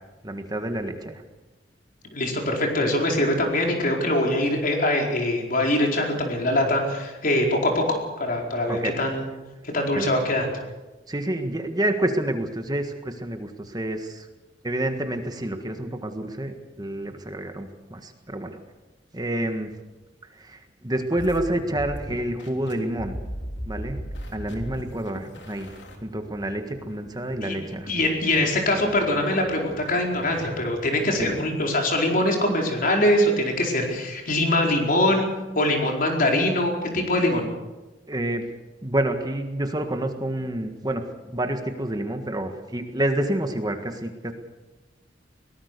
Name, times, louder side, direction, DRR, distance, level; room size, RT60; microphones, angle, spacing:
voice 1, 0.2-1.2 8.7-8.9 9.9-10.1 11.1-14.3 14.6-18.6 19.1-19.7 20.3-23.2 23.6-24.0 24.3-25.7 26.0-27.9 31.2-31.3 38.1-38.4 38.8-44.3, right 1 dB, 20° right, 6 dB, 1.6 m, -28 dB
voice 2, 2.1-9.2 9.6-10.5 27.4-27.5 27.9-35.3 35.5-37.4, left 1 dB, 50° left, 1 dB, 4.6 m, -23 dB
sound 1, 21.2-30.9, equal, 75° left, 3.6 m, -39 dB
23.0 x 18.5 x 6.8 m, 1.1 s
head